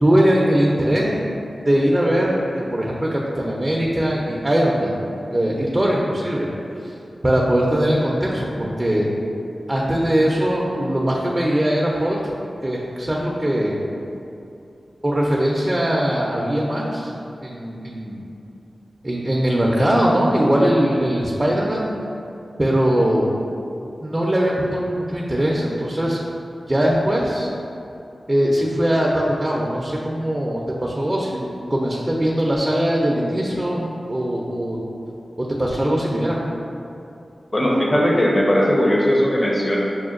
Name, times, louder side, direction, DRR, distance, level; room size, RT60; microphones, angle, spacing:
voice 1, 0.0-1.2 1.7-5.0 5.3-6.5 6.8-6.9 7.2-9.1 9.7-12.2 12.6-13.8 15.0-17.1 17.4-18.2 19.0-21.9 22.6-23.3 24.0-26.2 26.7-27.5 28.3-34.8 35.4-36.4, equal, 30° right, -3 dB, 0.5 m, -20 dB
voice 2, 37.5-39.8, equal, 40° left, -3 dB, 0.8 m, -18 dB
6.3 x 2.2 x 2.5 m, 2.7 s
cardioid pair, 45°, 0 cm